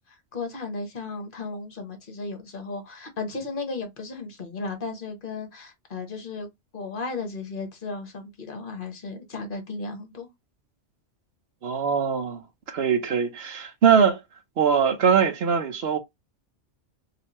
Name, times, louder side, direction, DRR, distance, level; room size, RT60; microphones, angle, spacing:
voice 1, 0.3-6.5 6.7-10.3, left 3 dB, 50° left, 1.2 m, -35 dB
voice 2, 11.6-12.4 12.7-14.2 14.6-16.0, right 7 dB, 60° right, 1.0 m, -22 dB
3.3 x 2.9 x 3.0 m
omnidirectional pair, 1.2 m